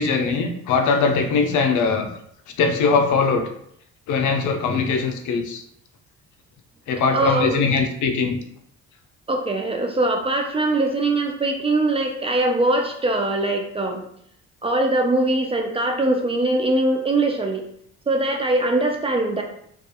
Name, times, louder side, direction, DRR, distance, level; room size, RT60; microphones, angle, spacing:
voice 1, 0.0-2.1 2.6-3.5 4.1-5.6 6.9-8.4, left 4 dB, 80° left, 5 dB, 0.5 m, -21 dB
voice 2, 7.1-7.7 9.3-14.0 14.6-17.6 18.1-19.4, right 2 dB, 20° right, 2 dB, 0.3 m, -22 dB
2.7 x 2.3 x 2.3 m, 0.69 s
cardioid pair, 90°, 30 cm